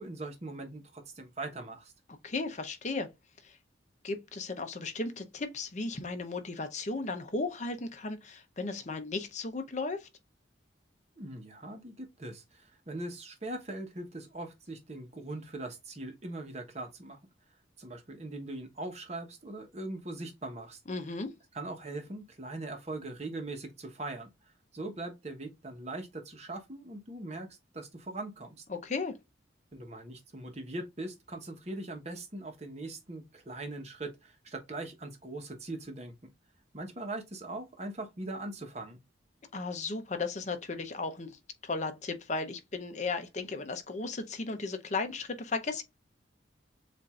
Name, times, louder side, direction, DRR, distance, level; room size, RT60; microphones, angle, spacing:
voice 1, 0.0-1.9 11.2-17.2 17.8-20.8 21.5-24.3 24.7-28.6 29.7-36.3 36.7-39.0, right 2 dB, 35° right, 1.0 m, -41 dB
voice 2, 2.2-3.1 3.4-3.6 4.0-10.1 20.9-21.3 28.7-29.1 39.5-41.4 41.6-45.8, left 3 dB, 40° left, 0.7 m, -35 dB
7.1 x 2.6 x 2.4 m
head